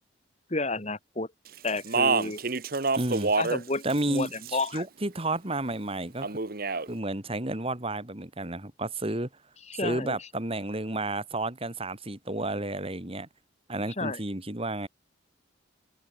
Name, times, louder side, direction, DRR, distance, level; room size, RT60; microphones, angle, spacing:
voice 1, 0.5-1.3 1.6-2.4 3.4-4.8 9.7-10.3 14.0-14.2, left 3 dB, 35° left, 2.1 m, -31 dB
Speech, 1.7-3.6 3.9-4.8 6.2-6.9, right 4 dB, 50° right, 1.3 m, -27 dB
voice 2, 2.9-3.3 3.8-6.3 6.9-9.3 9.8-13.3 13.7-14.9, right 2 dB, 30° right, 2.4 m, -31 dB
open air
head